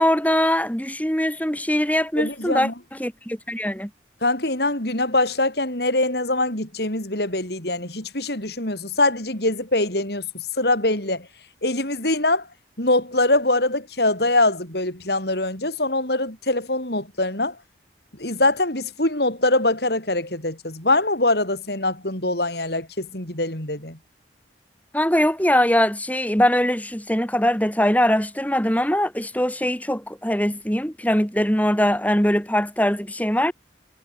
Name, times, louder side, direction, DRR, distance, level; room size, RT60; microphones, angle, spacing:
voice 1, 0.0-3.9 24.9-33.5, equal, 10° left, 5.8 m, -22 dB
voice 2, 2.2-2.7 4.2-10.2 10.6-11.3 11.6-12.5 12.8-17.5 18.2-24.0, left 2 dB, 60° left, 6.0 m, -23 dB
head